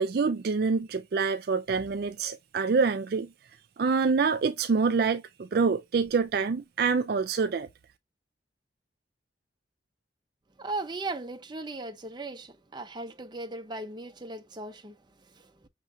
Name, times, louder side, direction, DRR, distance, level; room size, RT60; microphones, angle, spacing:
voice 1, 0.0-3.3 3.8-7.7, right 5 dB, 55° right, 0.4 m, -26 dB
voice 2, 10.6-15.0 15.4-15.5, right 2 dB, 25° right, 0.7 m, -37 dB
6.5 x 3.1 x 2.5 m
head